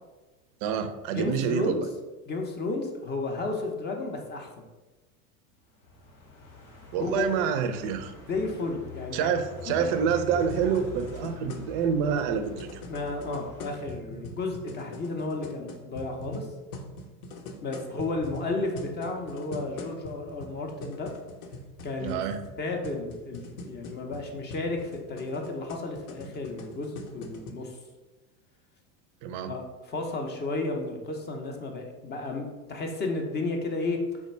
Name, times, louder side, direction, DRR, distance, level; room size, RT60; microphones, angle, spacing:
voice 1, 0.6-1.9 6.9-8.1 9.1-12.8 22.0-22.4 29.2-29.5, right 7 dB, 45° right, 9 dB, 0.4 m, -27 dB
voice 2, 1.1-1.8 2.3-4.5 7.0-7.2 8.3-9.3 9.7-9.9 12.9-16.5 17.6-21.1 21.8-22.2 22.6-27.8 29.5-34.0, left 3 dB, 25° left, 2 dB, 0.5 m, -33 dB
sound 1, 5.8-13.9, equal, 85° left, 1.3 m, -44 dB
sound 2, 9.7-27.5, left 2 dB, 65° left, 0.7 m, -42 dB
3.3 x 2.2 x 4.2 m, 1.2 s
hypercardioid pair, 100°, 46 cm